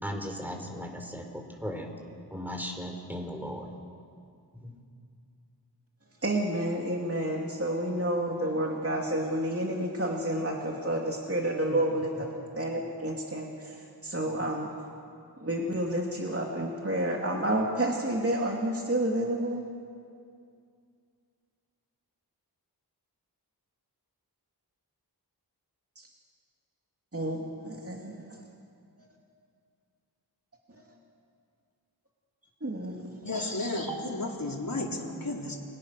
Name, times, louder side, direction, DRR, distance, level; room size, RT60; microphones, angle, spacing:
voice 1, 0.0-1.9 2.3-3.7 4.5-4.7 11.7-11.8 14.2-14.4, equal, 5° right, 3 dB, 4.3 m, -37 dB
voice 2, 6.2-12.3 12.6-14.7 15.4-19.6 26.0-26.1 27.1-28.4 32.6-33.2, right 1 dB, 35° right, -1 dB, 2.7 m, -30 dB
voice 3, 33.2-35.6, left 2 dB, 55° left, -2 dB, 4.0 m, -33 dB
29.5 x 23.5 x 6.7 m, 2.4 s
wide cardioid pair, 65°, 41 cm